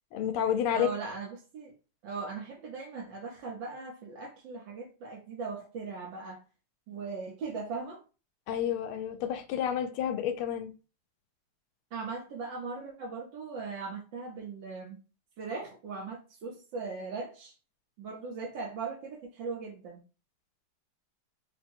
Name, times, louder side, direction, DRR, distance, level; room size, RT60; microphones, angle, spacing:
voice 1, 0.1-0.9 8.5-10.7, left 9 dB, 80° left, 1.4 m, -30 dB
voice 2, 0.7-1.7 2.0-6.4 6.9-8.0 11.9-15.0 15.4-17.5 18.0-20.0, right 4 dB, 65° right, 1.5 m, -39 dB
3.9 x 2.2 x 4.4 m
omnidirectional pair, 2.4 m